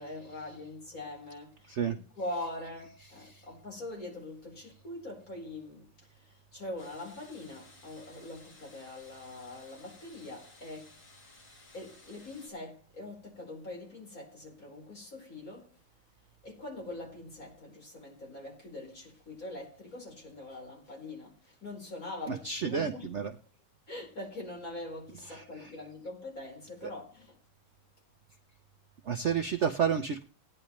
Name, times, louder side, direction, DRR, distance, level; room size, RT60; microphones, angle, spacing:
voice 1, 0.0-11.0 11.7-15.8 16.4-23.1 23.9-27.4, left 2 dB, 40° left, 5.0 m, -43 dB
sound 1, 6.8-12.5, left 2 dB, 65° left, 3.4 m, -57 dB
voice 2, 22.3-23.3 25.3-25.7 29.1-30.2, right 7 dB, 75° right, 0.6 m, -31 dB
17.5 x 10.0 x 3.1 m
omnidirectional pair, 2.3 m